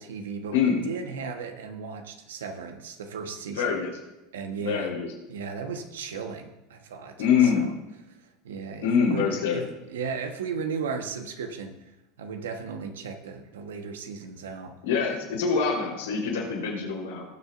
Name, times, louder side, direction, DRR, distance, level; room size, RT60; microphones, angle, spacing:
voice 1, 0.0-3.6 4.3-4.9 5.3-7.7 8.4-11.8 12.2-14.8, right 5 dB, 85° right, 5 dB, 1.3 m, -36 dB
voice 2, 3.6-3.9 4.6-5.1 7.2-7.7 8.8-9.6 14.8-17.3, left 6 dB, 80° left, -2 dB, 3.8 m, -24 dB
19.0 x 6.6 x 2.6 m, 1.0 s
hypercardioid pair, 90°, 0 cm